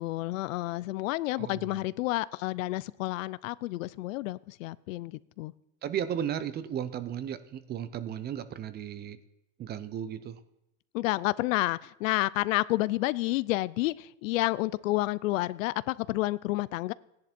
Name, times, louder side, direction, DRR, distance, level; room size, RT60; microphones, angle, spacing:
voice 1, 0.0-5.5 10.9-16.9, left 18 dB, 75° left, 19 dB, 0.6 m, -30 dB
voice 2, 1.4-1.8 5.8-9.2 9.6-10.4, right 9 dB, 25° right, 15 dB, 0.6 m, -35 dB
15.5 x 10.5 x 4.4 m, 0.91 s
supercardioid pair, 135°, 39 cm